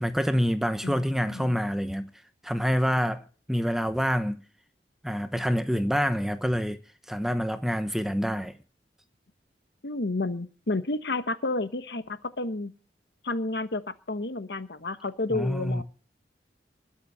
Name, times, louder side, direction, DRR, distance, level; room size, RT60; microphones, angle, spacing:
voice 1, 0.0-2.1 2.4-4.4 5.0-6.8 7.1-8.5 15.3-15.8, equal, ahead, 0.9 m, -27 dB
voice 2, 0.8-1.6 9.8-12.7 13.2-13.8 14.1-15.8, left 2 dB, 70° left, 1.1 m, -31 dB
21.0 x 7.1 x 5.6 m
head